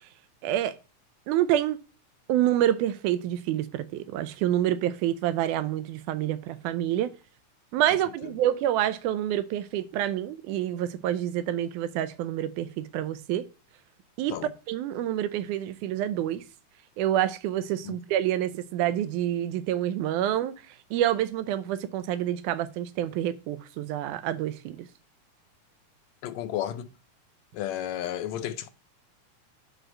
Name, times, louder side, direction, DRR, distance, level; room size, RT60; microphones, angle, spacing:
voice 1, 0.4-0.7 1.3-1.8 2.3-7.1 7.7-13.4 14.2-14.3 14.7-16.4 17.0-20.5 20.9-24.9, right 12 dB, 85° right, 2.2 m, -27 dB
voice 2, 26.2-26.9 27.5-28.7, left 11 dB, 75° left, 1.7 m, -32 dB
6.2 x 5.2 x 6.3 m
omnidirectional pair, 3.5 m